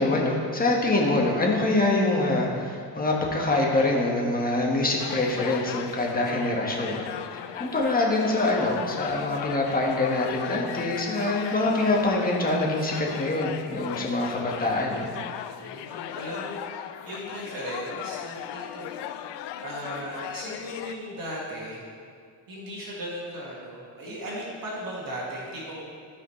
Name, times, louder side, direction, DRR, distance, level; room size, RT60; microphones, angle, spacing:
voice 1, 0.0-15.1, left 2 dB, 20° left, -1 dB, 1.5 m, -25 dB
sound 1, 5.0-20.9, left 11 dB, 80° left, 0.5 m, -37 dB
voice 2, 15.6-18.9 19.6-21.8 22.5-25.8, equal, 55° right, -5 dB, 2.0 m, -37 dB
13.0 x 5.2 x 3.2 m, 2.2 s
cardioid pair, 95°, 42 cm